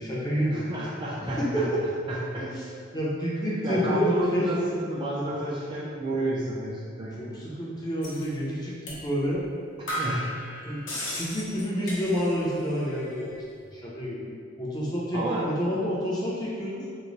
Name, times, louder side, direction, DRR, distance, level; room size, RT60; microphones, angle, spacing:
voice 1, 0.0-0.7 1.4-1.8 2.4-4.7 7.1-9.4 10.6-10.8 11.1-13.3 13.7-14.3 14.6-16.9, equal, 20° left, -6 dB, 0.6 m, -29 dB
voice 2, 0.5-1.7 2.1-2.5 3.6-7.3 10.0-10.3 15.1-15.4, right 1 dB, 25° right, -6 dB, 0.3 m, -30 dB
sound 1, 8.0-8.3 8.9-9.0 9.4-9.5 9.9-12.5 12.8-13.4, equal, 65° left, 0.8 m, -35 dB
3.0 x 2.1 x 3.8 m, 2.2 s
head